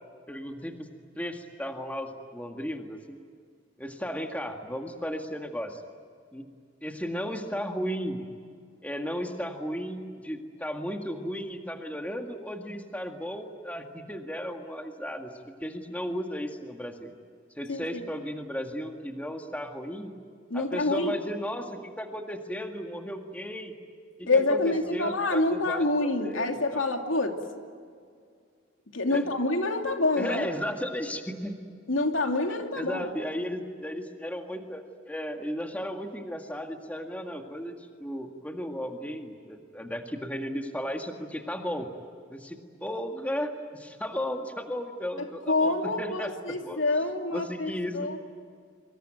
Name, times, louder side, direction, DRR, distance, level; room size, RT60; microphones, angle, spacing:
voice 1, 0.3-0.9 1.2-3.2 3.8-5.8 6.3-6.5 6.8-8.2 8.8-15.3 15.6-17.2 17.6-20.1 20.5-23.7 24.2-26.8 29.1-29.2 30.2-31.6 32.4-41.9 42.3-46.3 46.6-46.8 47.3-48.2, equal, 10° left, 4 dB, 1.9 m, -35 dB
voice 2, 17.7-18.0 20.5-21.1 24.3-27.4 28.9-30.5 31.9-33.1 45.2-48.2, left 2 dB, 80° left, 4 dB, 2.7 m, -27 dB
25.5 x 25.0 x 9.1 m, 2.1 s
head